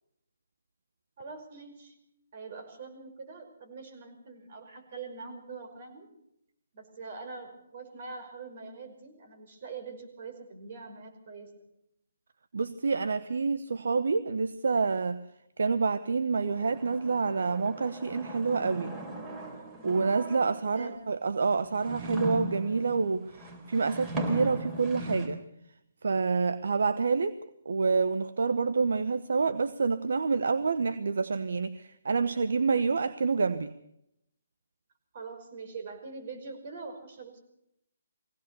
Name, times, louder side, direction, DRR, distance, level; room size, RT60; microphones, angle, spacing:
voice 1, 1.2-2.0 2.3-6.1 6.7-11.5 20.6-21.0 35.1-37.4, right 4 dB, 50° right, 6 dB, 5.5 m, -43 dB
voice 2, 12.5-15.2 15.6-19.0 19.8-25.4 26.0-27.3 27.6-33.7, right 4 dB, 70° right, 12 dB, 1.0 m, -28 dB
sound 1, 16.5-20.8 21.4-25.3, right 1 dB, 20° right, 3.9 m, -39 dB
22.0 x 17.0 x 6.9 m, 0.78 s
hypercardioid pair, 150°, 0 cm